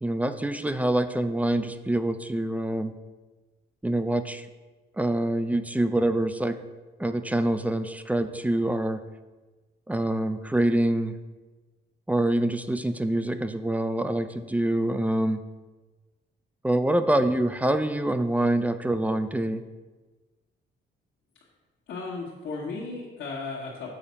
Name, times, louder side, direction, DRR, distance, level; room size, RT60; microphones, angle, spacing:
voice 1, 0.0-2.9 3.8-4.4 5.0-6.6 7.0-9.0 9.9-11.2 12.1-15.4 16.6-19.6, right 1 dB, 5° right, 10 dB, 0.4 m, -25 dB
voice 2, 21.9-23.9, left 3 dB, 70° left, -6 dB, 1.4 m, -35 dB
6.9 x 4.1 x 5.6 m, 1.3 s
cardioid pair, 90°, 20 cm